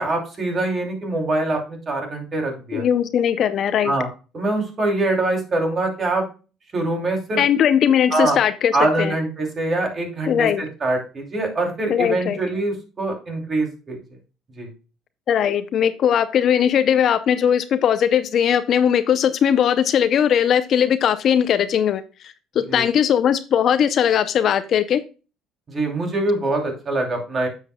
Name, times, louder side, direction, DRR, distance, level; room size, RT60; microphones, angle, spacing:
voice 1, 0.0-2.8 3.8-4.1 4.3-6.2 6.7-7.4 8.1-8.4 8.7-14.0 14.6-14.7 22.7-22.8 25.7-27.5, right 2 dB, 30° right, 2 dB, 2.8 m, -24 dB
voice 2, 2.7-3.9 7.4-8.7 9.0-9.1 10.3-10.6 11.9-12.4 15.3-22.0 22.5-25.0, left 9 dB, 50° left, 13 dB, 0.5 m, -19 dB
9.8 x 7.3 x 2.2 m, 0.33 s
cardioid pair, 120°, 0 cm